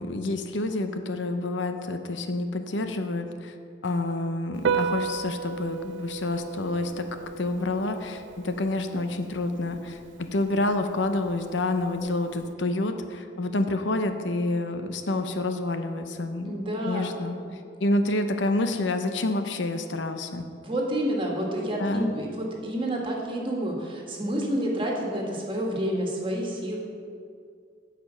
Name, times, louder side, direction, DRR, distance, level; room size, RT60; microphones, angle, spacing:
voice 1, 0.0-3.5 3.8-7.1 7.4-10.0 10.3-16.6 16.8-20.5 21.8-22.1, left 2 dB, 85° left, 7 dB, 0.7 m, -28 dB
Piano, 4.5-12.5, right 6 dB, 75° right, 0.4 m, -35 dB
voice 2, 16.5-17.1 17.4-17.5 20.6-26.8, equal, 30° right, -1 dB, 1.8 m, -29 dB
15.0 x 5.2 x 5.6 m, 2.2 s
head